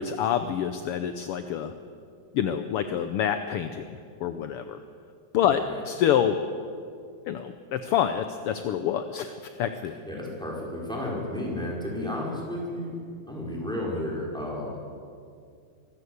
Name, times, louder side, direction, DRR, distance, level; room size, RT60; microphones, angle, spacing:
voice 1, 0.0-1.7 2.3-3.9 4.2-4.8 5.3-6.3 7.3-10.0, left 9 dB, 70° left, 9 dB, 1.4 m, -27 dB
voice 2, 5.5-5.8 10.0-13.0 13.3-14.8, left 1 dB, ahead, -3 dB, 4.9 m, -32 dB
24.0 x 14.0 x 8.1 m, 2.3 s
omnidirectional pair, 3.3 m